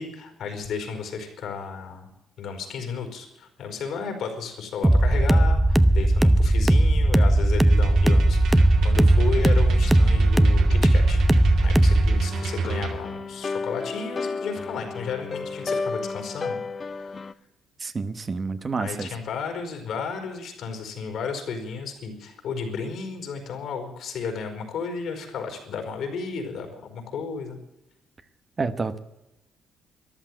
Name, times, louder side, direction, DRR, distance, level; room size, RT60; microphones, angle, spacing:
voice 1, 0.0-2.1 2.4-11.2 11.6-16.6 16.9-17.3 18.8-27.6, left 5 dB, 75° left, 5 dB, 4.5 m, -33 dB
sound 1, 4.8-12.2, right 1 dB, 10° right, 0.7 m, -18 dB
sound 2, 7.7-13.0, right 4 dB, 75° right, 2.3 m, -27 dB
sound 3, 12.3-17.3, left 4 dB, 35° left, 0.7 m, -32 dB
voice 2, 17.8-19.1 28.6-29.0, right 4 dB, 35° right, 11 dB, 1.2 m, -29 dB
13.5 x 11.5 x 9.2 m, 0.91 s
cardioid pair, 90°, 0 cm